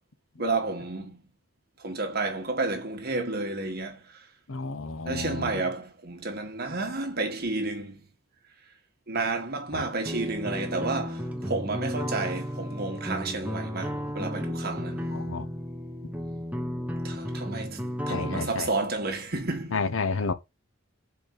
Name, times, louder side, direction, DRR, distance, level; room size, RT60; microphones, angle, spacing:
voice 1, 0.4-1.2 1.8-4.0 5.0-8.0 9.1-15.2 17.0-19.8, right 3 dB, 50° right, 1.6 m, -31 dB
voice 2, 4.5-5.6 9.7-9.9 15.1-15.5 18.1-18.7 19.7-20.3, left 4 dB, 85° left, 0.9 m, -31 dB
sound 1, 10.1-18.5, equal, 10° right, 0.9 m, -33 dB
5.5 x 4.4 x 6.1 m
head